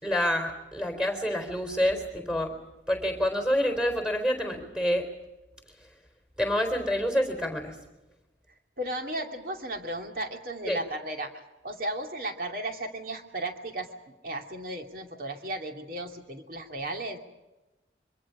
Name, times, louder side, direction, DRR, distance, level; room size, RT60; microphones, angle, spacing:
voice 1, 0.0-2.5 2.9-5.1 6.4-7.8 10.7-10.8, equal, 5° right, 5 dB, 4.0 m, -27 dB
voice 2, 8.8-11.3 11.6-13.9 14.2-17.2, right 1 dB, 50° right, 3 dB, 2.6 m, -35 dB
26.0 x 24.5 x 5.0 m, 1.0 s
head